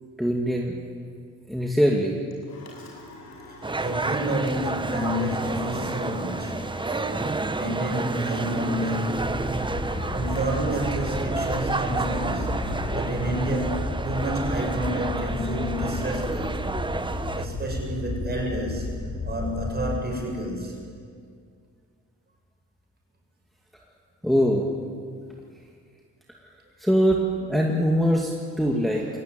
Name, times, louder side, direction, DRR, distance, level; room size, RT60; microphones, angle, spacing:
voice 1, 0.2-0.8 1.5-2.2 24.2-24.7 26.8-29.1, equal, ahead, -1 dB, 2.4 m, -22 dB
sound 1, 2.3-13.3, left 1 dB, 65° left, 7.2 m, -45 dB
voice 2, 3.5-9.4 10.1-12.5 12.9-16.8 17.4-18.9 19.2-20.8, equal, 35° right, 0 dB, 7.2 m, -30 dB
sound 2, 3.6-17.5, right 3 dB, 15° right, 1.0 m, -30 dB
sound 3, 9.2-20.0, left 2 dB, 30° left, 2.5 m, -33 dB
22.0 x 17.5 x 9.4 m, 2.2 s
cardioid pair, 90°, 30 cm